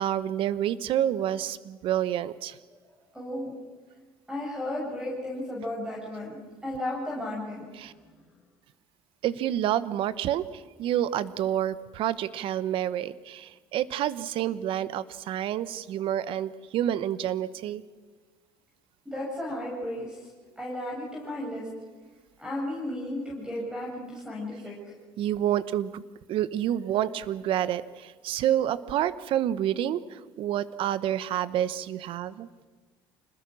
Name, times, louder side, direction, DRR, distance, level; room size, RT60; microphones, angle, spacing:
voice 1, 0.0-2.6 7.8-7.9 9.2-17.8 25.2-26.0 26.3-32.5, right 11 dB, 60° right, 16 dB, 1.1 m, -28 dB
voice 2, 3.1-3.5 4.3-8.0 19.1-20.3 20.6-21.7 22.4-24.9, left 1 dB, 5° right, -3 dB, 7.3 m, -34 dB
26.5 x 20.5 x 6.3 m, 1.4 s
supercardioid pair, 100°, 10 cm